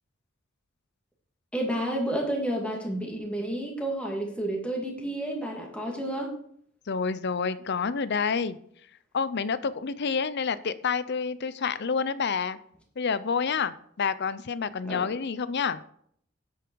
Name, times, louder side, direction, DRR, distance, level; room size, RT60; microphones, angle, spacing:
voice 1, 1.5-6.3 14.8-15.1, right 1 dB, 5° left, -1 dB, 2.5 m, -30 dB
voice 2, 6.9-8.6 9.1-12.6 13.0-15.8, left 5 dB, 55° left, 15 dB, 0.6 m, -28 dB
9.8 x 8.5 x 4.7 m, 0.65 s
head